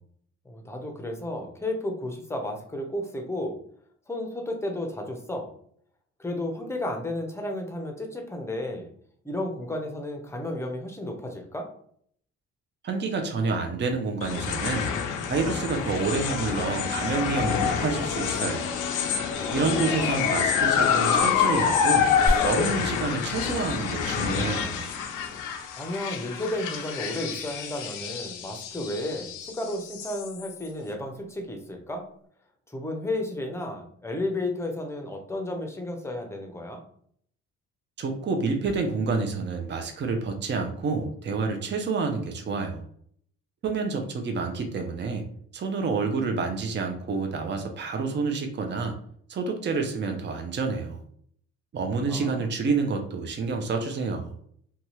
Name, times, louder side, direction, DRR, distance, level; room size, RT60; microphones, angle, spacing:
voice 1, 0.4-3.6 4.1-5.5 6.2-8.9 9.2-11.7 19.4-20.1 25.8-32.0 32.7-36.8 52.0-52.5, left 1 dB, 10° left, 3 dB, 0.6 m, -33 dB
voice 2, 12.8-14.9 15.3-18.7 19.5-22.1 22.4-24.8 38.0-42.8 43.6-45.2 45.5-49.0 49.3-51.0 51.7-54.3, right 4 dB, 40° right, 4 dB, 0.6 m, -28 dB
sound 1, 14.2-30.7, left 7 dB, 90° left, 0.5 m, -27 dB
sound 2, 22.3-24.5, equal, 5° right, 1.3 m, -31 dB
2.7 x 2.3 x 3.0 m, 0.63 s
cardioid pair, 90°, 30 cm